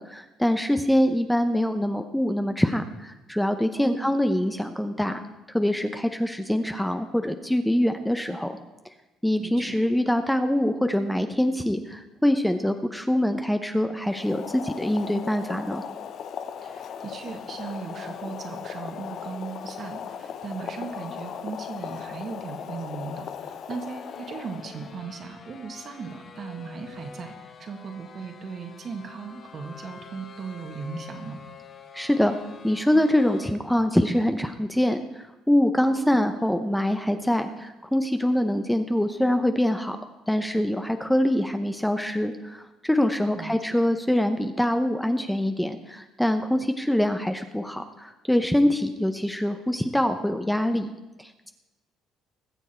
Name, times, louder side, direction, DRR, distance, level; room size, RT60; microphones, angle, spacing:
voice 1, 0.0-5.2 5.5-8.5 9.2-15.8 31.9-32.4 32.6-40.0 40.3-50.9 51.2-51.5, left 1 dB, 5° left, 7 dB, 0.6 m, -24 dB
voice 2, 3.7-4.1 9.4-9.8 16.6-31.4 36.0-36.2 43.3-43.8, right 5 dB, 45° right, 5 dB, 1.7 m, -37 dB
Boiling, 14.0-25.0, left 8 dB, 55° left, 0.7 m, -37 dB
sound 1, 23.9-33.5, left 4 dB, 40° left, 1.0 m, -47 dB
20.5 x 7.2 x 4.4 m, 1.0 s
cardioid pair, 100°, 0 cm